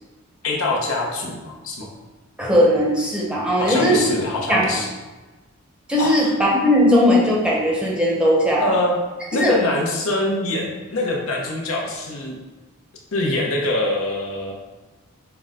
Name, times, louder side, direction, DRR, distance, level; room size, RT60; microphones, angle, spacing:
voice 1, 0.4-1.9 3.6-4.9 6.0-6.3 8.6-9.0 9.3-12.4 13.1-14.5, left 2 dB, 70° left, -1 dB, 0.8 m, -24 dB
voice 2, 2.4-4.0 4.5-4.8 5.9-8.7 9.4-9.6, equal, 5° right, -5 dB, 0.7 m, -18 dB
5.6 x 2.1 x 3.7 m, 1.2 s
head